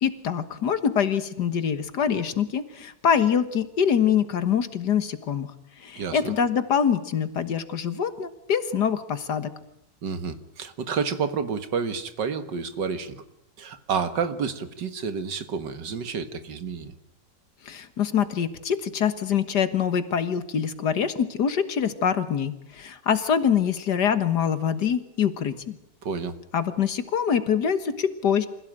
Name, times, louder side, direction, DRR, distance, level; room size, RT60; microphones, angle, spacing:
voice 1, 0.0-5.5 5.8-9.5 17.7-25.8 26.5-28.5, left 7 dB, 70° left, 12 dB, 2.0 m, -24 dB
voice 2, 6.0-6.3 10.0-13.2 13.6-16.9 26.0-26.4, right 6 dB, 80° right, 11 dB, 2.2 m, -30 dB
26.0 x 16.5 x 8.9 m, 0.77 s
omnidirectional pair, 1.9 m